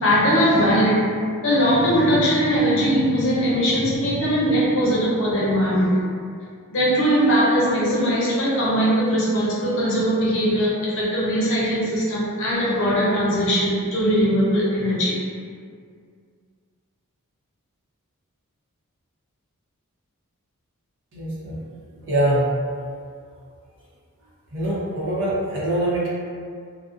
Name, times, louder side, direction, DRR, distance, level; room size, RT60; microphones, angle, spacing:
voice 1, 0.0-1.0 1.4-5.9 6.7-15.1, equal, 60° left, -7 dB, 0.7 m, -20 dB
voice 2, 21.1-21.6 22.1-22.5 24.5-26.1, right 1 dB, 60° right, -7 dB, 0.7 m, -23 dB
2.4 x 2.1 x 2.4 m, 2.2 s
head